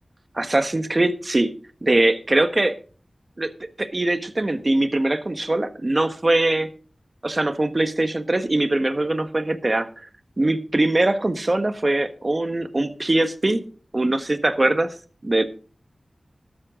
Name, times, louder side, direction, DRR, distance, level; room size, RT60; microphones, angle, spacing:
voice 1, 0.3-1.5 1.8-2.7 3.4-3.5 3.8-6.7 7.2-9.9 10.4-13.6 13.9-14.9 15.2-15.4, right 2 dB, 40° right, 10 dB, 1.5 m, -22 dB
13.5 x 13.0 x 3.8 m, 0.38 s
wide cardioid pair, 60°, 0 cm